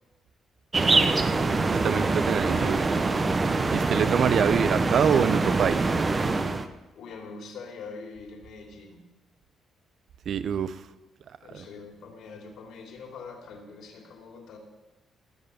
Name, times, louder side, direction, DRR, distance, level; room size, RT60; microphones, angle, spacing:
sound 1, 0.7-6.7, right 3 dB, 30° right, 1.0 m, -24 dB
voice 1, 1.7-2.8 3.7-5.8 10.3-10.8 11.5-11.6, right 8 dB, 65° right, 14 dB, 0.7 m, -25 dB
voice 2, 2.2-2.9 4.2-4.6 6.9-9.0 11.4-14.6, left 4 dB, 75° left, 2 dB, 2.9 m, -43 dB
18.5 x 6.9 x 7.2 m, 1.1 s
cardioid pair, 90°, 0 cm